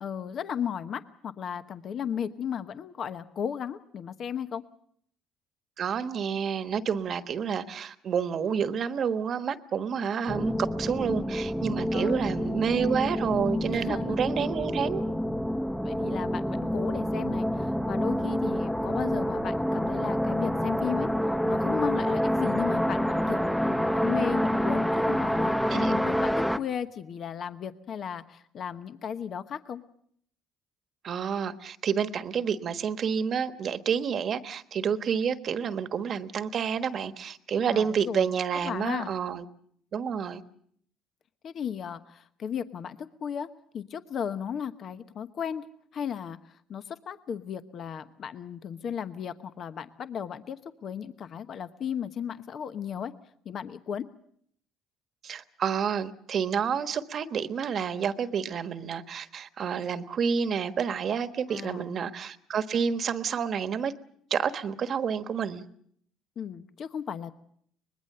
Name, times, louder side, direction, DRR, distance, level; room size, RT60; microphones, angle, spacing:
voice 1, 0.0-4.6 11.9-12.3 13.7-14.2 15.8-21.1 21.4-29.8 37.6-38.3 38.6-39.1 41.4-43.5 43.7-53.1 53.4-54.1 61.5-61.9 66.4-67.4, left 8 dB, 55° left, 11 dB, 1.0 m, -35 dB
voice 2, 5.8-15.0 25.7-25.9 31.0-39.4 39.9-40.4 55.2-63.9 64.3-65.6, right 7 dB, 50° right, 11 dB, 1.3 m, -29 dB
sound 1, 10.3-26.6, equal, 5° left, 0.9 m, -27 dB
24.0 x 20.5 x 6.7 m, 0.66 s
supercardioid pair, 85°, 0 cm